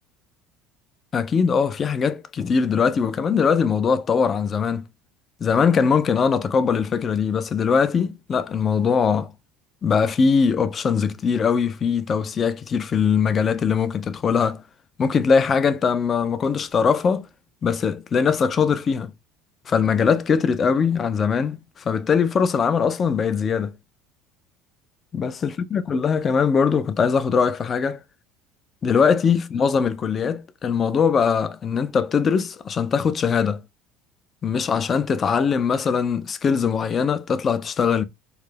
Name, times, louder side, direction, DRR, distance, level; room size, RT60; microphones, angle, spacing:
voice 1, 1.1-4.8 5.4-9.3 9.8-14.6 15.0-17.3 17.6-19.1 19.7-23.8 25.1-28.0 28.8-33.6 34.4-38.0, left 6 dB, 35° left, 0.3 m, -21 dB
2.3 x 2.0 x 3.1 m
supercardioid pair, 105°, 0 cm